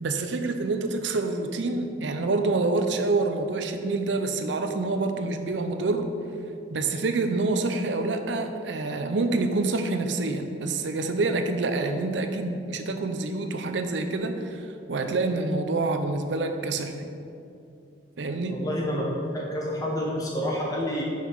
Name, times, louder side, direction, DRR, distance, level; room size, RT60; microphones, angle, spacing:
voice 1, 0.0-6.1 6.7-17.1 18.2-18.6, right 3 dB, 85° right, 7 dB, 0.6 m, -27 dB
voice 2, 18.5-21.0, equal, 20° left, -3 dB, 1.0 m, -28 dB
5.7 x 5.6 x 4.6 m, 2.5 s
head